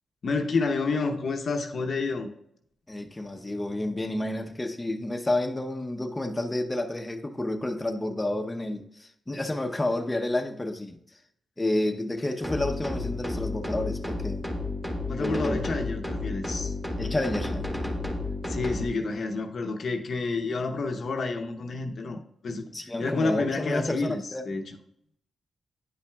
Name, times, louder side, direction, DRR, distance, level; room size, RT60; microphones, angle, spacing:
voice 1, 0.2-2.3 15.1-16.7 18.5-22.6 23.0-24.8, left 3 dB, 65° left, 0.8 m, -29 dB
voice 2, 2.9-11.0 11.6-14.5 15.2-15.6 17.0-17.6 22.7-24.4, left 1 dB, 20° left, 0.8 m, -30 dB
sound 1, 12.4-18.9, left 2 dB, ahead, 1.4 m, -32 dB
9.8 x 5.6 x 2.3 m
cardioid pair, 60°, 0 cm